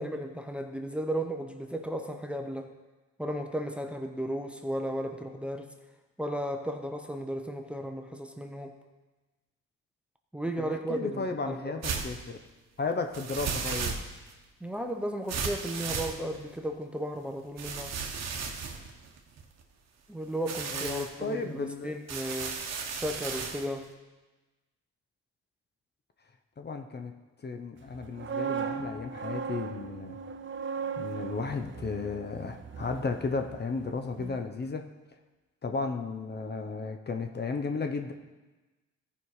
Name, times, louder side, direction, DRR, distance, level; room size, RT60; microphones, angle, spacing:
voice 1, 0.0-2.7 3.2-5.7 6.2-8.8 10.3-11.8 14.6-17.9 20.1-22.6 22.9-23.9, right 1 dB, 5° right, 4 dB, 0.8 m, -35 dB
voice 2, 10.6-12.4 12.8-14.0 20.7-22.0 26.6-27.1 27.4-30.2 31.0-34.8 35.6-38.1, left 4 dB, 35° left, 5 dB, 0.8 m, -34 dB
sound 1, 11.8-12.2 13.1-14.3 15.3-16.6 17.6-19.6 20.3-21.1 22.1-23.7, right 5 dB, 60° right, 1.2 m, -35 dB
sound 2, 27.9-33.9 34.2-34.4, right 6 dB, 40° right, 0.7 m, -37 dB
14.0 x 5.4 x 4.8 m, 1.2 s
cardioid pair, 90°, 30 cm